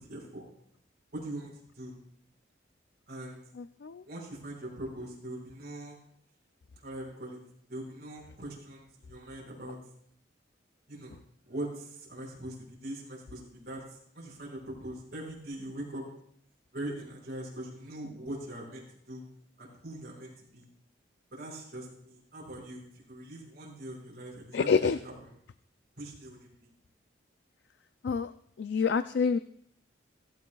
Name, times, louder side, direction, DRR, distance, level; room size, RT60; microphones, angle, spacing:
voice 1, 0.1-0.4 1.1-1.9 3.1-3.4 4.1-6.0 6.8-7.4 7.7-9.8 10.9-11.1 11.4-12.5 12.8-13.4 13.6-13.8 14.1-16.0 16.7-19.2 19.6-20.6 21.3-22.8 23.1-25.4 26.0-26.5, right 1 dB, 55° right, -3 dB, 5.2 m, -41 dB
voice 2, 24.5-25.0 28.0-28.3 28.6-29.4, left 5 dB, 65° left, 12 dB, 0.4 m, -26 dB
16.5 x 15.5 x 2.3 m, 0.68 s
head